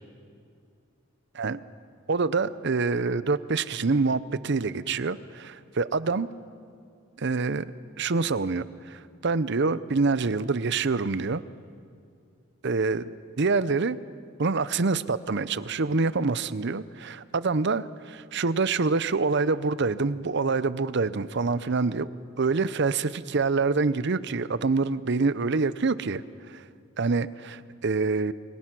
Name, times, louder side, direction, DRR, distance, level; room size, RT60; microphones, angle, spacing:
voice 1, 2.1-6.3 7.2-7.7 8.0-11.4 12.6-14.0 14.4-22.1 22.4-26.6 27.0-28.3, right 4 dB, 55° right, 16 dB, 0.7 m, -26 dB
28.0 x 23.0 x 6.1 m, 2.3 s
head